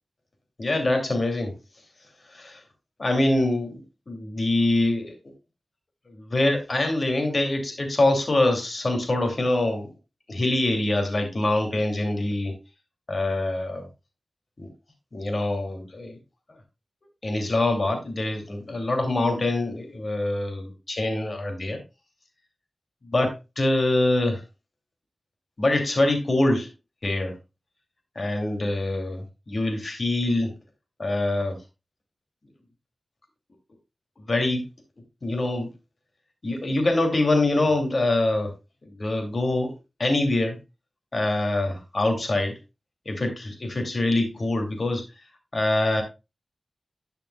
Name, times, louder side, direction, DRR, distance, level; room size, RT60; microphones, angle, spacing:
voice 1, 0.6-1.5 2.3-2.6 3.0-5.1 6.1-9.9 10.3-12.6 13.1-13.9 14.6-14.7 15.1-16.2 17.2-21.8 23.0-24.4 25.6-26.7 27.0-27.3 28.2-30.5 31.0-31.6 34.2-34.6 35.2-35.7 36.4-38.5 38.9-39.7 40.0-40.6 41.1-42.6 43.1-45.0 45.5-46.0, left 2 dB, 55° left, 4 dB, 2.7 m, -24 dB
11.5 x 5.7 x 2.3 m, 0.26 s
cardioid pair, 40°, 0 cm